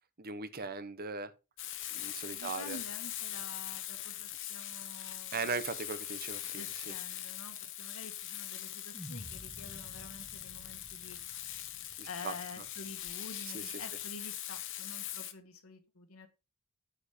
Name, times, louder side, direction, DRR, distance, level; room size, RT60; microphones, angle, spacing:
voice 1, 0.2-1.3 1.9-2.8 5.3-6.9 12.0-12.3 13.5-13.8, right 4 dB, 45° right, 0.9 m, -39 dB
Frying (food), 1.6-15.3, left 12 dB, 60° left, 1.0 m, -42 dB
voice 2, 2.3-5.6 6.5-11.2 12.0-16.3, left 3 dB, 85° left, 1.7 m, -49 dB
sound 1, 8.9-13.3, equal, ahead, 1.1 m, -52 dB
9.1 x 5.1 x 5.2 m
head